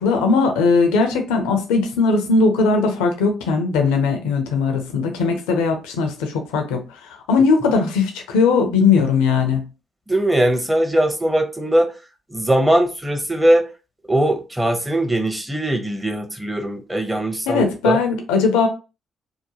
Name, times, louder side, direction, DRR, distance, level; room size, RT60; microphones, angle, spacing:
voice 1, 0.0-9.6 17.5-18.7, left 4 dB, 75° left, 0.5 m, -19 dB
voice 2, 10.1-11.9 12.3-13.7 14.1-18.0, right 1 dB, 10° right, 0.8 m, -20 dB
2.8 x 2.1 x 2.8 m
hypercardioid pair, 45°, 0 cm